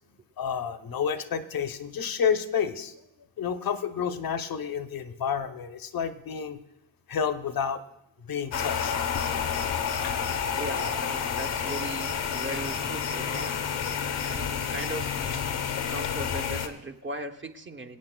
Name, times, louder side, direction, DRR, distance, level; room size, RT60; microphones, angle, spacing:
voice 1, 0.4-2.9 3.4-6.6 7.1-7.8 8.3-8.9 10.0-10.1 12.1-12.2, left 7 dB, 45° left, 9 dB, 0.7 m, -30 dB
sound 1, 8.5-16.7, left 7 dB, 80° left, 1.1 m, -29 dB
voice 2, 10.6-13.6 14.0-15.2 15.9-18.0, right 2 dB, 25° right, 5 dB, 0.7 m, -38 dB
24.5 x 8.6 x 2.2 m, 0.88 s
wide cardioid pair, 110°, 49 cm